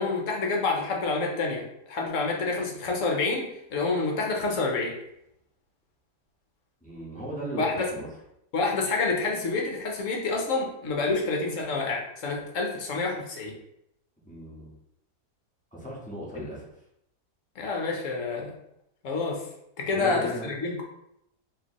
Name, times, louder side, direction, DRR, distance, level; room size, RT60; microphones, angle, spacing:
voice 1, 0.0-1.6 1.9-3.4 3.7-4.9 7.6-7.9 8.5-13.5 17.6-18.5 19.0-19.4 19.9-20.8, left 3 dB, 55° left, 0 dB, 1.1 m, -28 dB
voice 2, 6.8-8.1 14.2-14.7 15.7-16.6 19.9-20.5, right 1 dB, 5° left, -6 dB, 0.9 m, -37 dB
4.7 x 2.9 x 3.0 m, 0.80 s
omnidirectional pair, 1.7 m